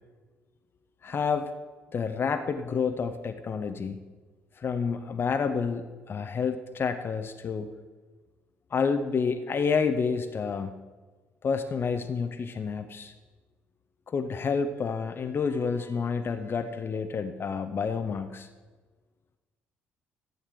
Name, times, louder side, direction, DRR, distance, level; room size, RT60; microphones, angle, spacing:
voice 1, 1.0-1.5 1.9-4.0 4.6-7.7 8.7-10.7 11.4-13.1 14.1-18.5, left 5 dB, 40° left, 7 dB, 0.8 m, -29 dB
14.5 x 8.3 x 4.7 m, 1.4 s
figure-of-eight pair, 45°, 6 cm